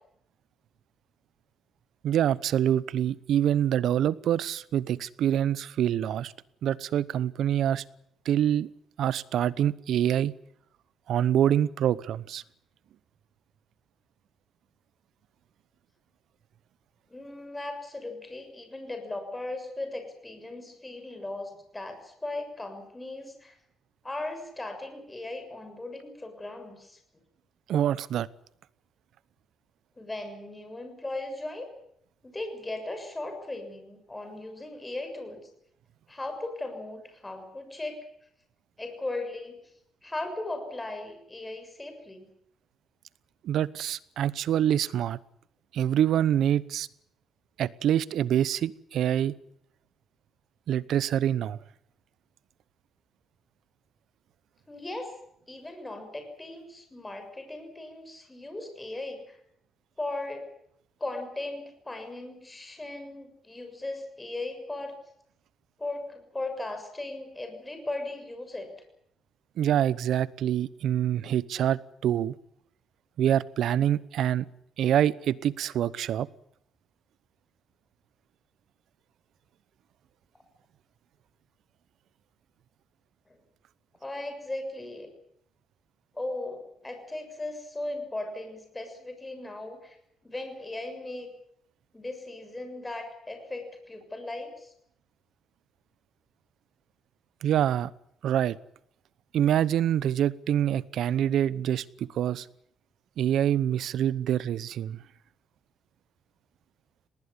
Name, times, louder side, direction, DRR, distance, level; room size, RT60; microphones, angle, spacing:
voice 1, 2.0-6.3 6.6-7.8 8.2-8.7 9.0-10.3 11.1-12.4 27.7-28.3 43.4-45.2 45.7-46.9 47.6-49.3 50.7-51.6 69.6-72.3 73.2-74.4 74.8-76.3 97.4-97.9 98.2-98.6 99.3-102.5 103.2-105.0, right 10 dB, 75° right, 20 dB, 0.8 m, -25 dB
voice 2, 17.1-23.6 24.0-27.0 30.0-31.7 32.2-35.4 36.1-38.0 38.8-39.7 40.0-42.3 54.7-55.2 55.5-59.4 60.0-60.5 61.0-65.0 65.8-68.7 83.3-83.4 84.0-85.1 86.1-90.0 90.2-91.3 91.9-94.7, left 2 dB, 15° left, 6 dB, 6.9 m, -37 dB
19.5 x 19.0 x 9.8 m, 0.73 s
cardioid pair, 90°, 0 cm